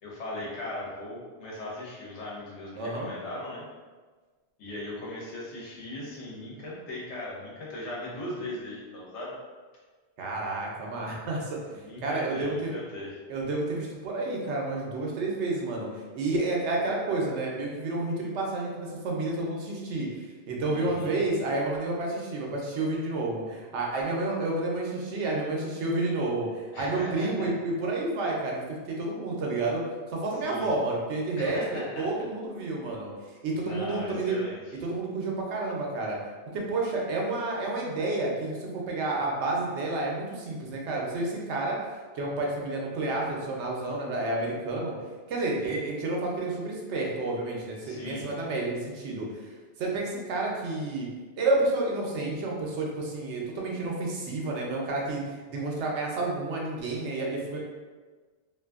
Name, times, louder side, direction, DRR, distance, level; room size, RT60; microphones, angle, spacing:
voice 1, 0.0-3.6 4.6-9.4 11.8-13.1 20.7-21.2 26.7-27.5 30.4-30.7 31.4-32.1 33.6-34.6 47.8-48.2, left 1 dB, 85° left, -5 dB, 1.1 m, -38 dB
voice 2, 2.8-3.1 10.2-11.6 12.0-12.7 13.3-29.8 30.1-33.1 33.4-34.4 34.8-36.2 36.5-41.8 42.1-45.0 45.3-51.1 51.4-57.6, right 2 dB, 80° right, -2 dB, 0.9 m, -30 dB
2.6 x 2.5 x 2.3 m, 1.4 s
omnidirectional pair, 1.2 m